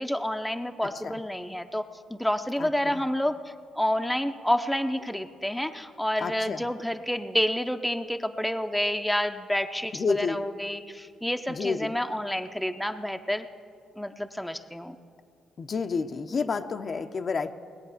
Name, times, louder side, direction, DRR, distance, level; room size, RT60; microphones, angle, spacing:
voice 1, 0.0-3.3 3.7-13.5 14.0-15.0, left 1 dB, 5° left, 7 dB, 0.8 m, -29 dB
voice 2, 0.8-1.2 2.6-3.0 6.2-6.6 9.9-10.4 11.5-11.9 15.6-17.5, left 5 dB, 50° left, 7 dB, 0.8 m, -30 dB
19.5 x 8.3 x 6.7 m, 2.3 s
supercardioid pair, 70°, 0 cm